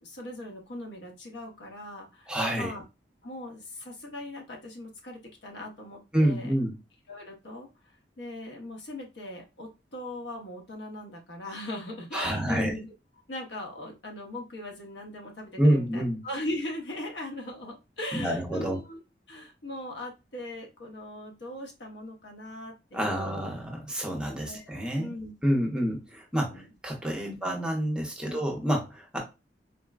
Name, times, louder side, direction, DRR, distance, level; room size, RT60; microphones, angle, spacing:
voice 1, 0.0-2.8 3.2-6.5 7.1-12.9 13.3-19.0 19.3-23.4 24.3-24.7 24.9-25.3 26.5-26.7 27.2-27.5 28.2-28.4, left 1 dB, 80° left, 1 dB, 0.9 m, -40 dB
voice 2, 2.3-2.7 6.1-6.7 12.1-12.7 15.6-16.2 18.1-18.8 22.9-25.1 25.4-29.2, right 1 dB, 5° right, 0 dB, 0.7 m, -28 dB
3.9 x 2.0 x 2.3 m, 0.27 s
head